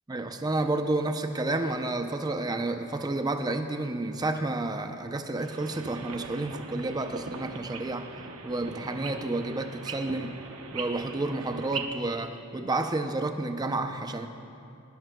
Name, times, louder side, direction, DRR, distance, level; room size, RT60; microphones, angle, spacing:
voice 1, 0.1-8.1 8.4-10.3 10.7-14.3, right 2 dB, 20° right, 6 dB, 0.5 m, -30 dB
sound 1, 5.4-11.9, right 4 dB, 75° right, 0.9 m, -40 dB
19.5 x 11.5 x 2.2 m, 2.6 s
head